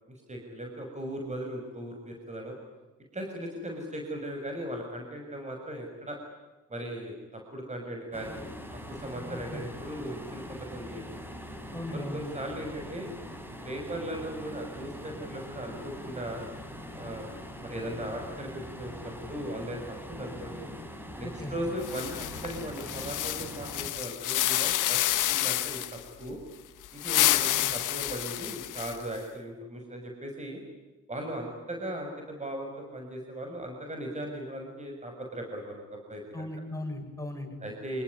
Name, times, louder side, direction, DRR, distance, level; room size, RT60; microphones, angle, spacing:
voice 1, 0.1-2.6 3.1-6.2 6.7-8.6 8.9-11.2 11.9-13.2 13.6-16.5 16.9-20.7 21.2-22.1 22.4-25.0 25.3-26.4 26.9-30.6 31.1-36.5 37.6-38.0, right 1 dB, 25° right, 2 dB, 6.4 m, -38 dB
sound 1, 8.1-23.9, left 1 dB, 5° right, 5.6 m, -42 dB
voice 2, 9.3-9.6 11.7-12.2 21.2-21.5 27.6-27.7 36.3-37.5, left 1 dB, 10° left, 2 dB, 7.8 m, -38 dB
sound 2, 21.8-26.0 26.8-29.2, left 14 dB, 85° left, 1.8 m, -29 dB
26.0 x 21.0 x 9.9 m, 1.2 s
cardioid pair, 90°, 30 cm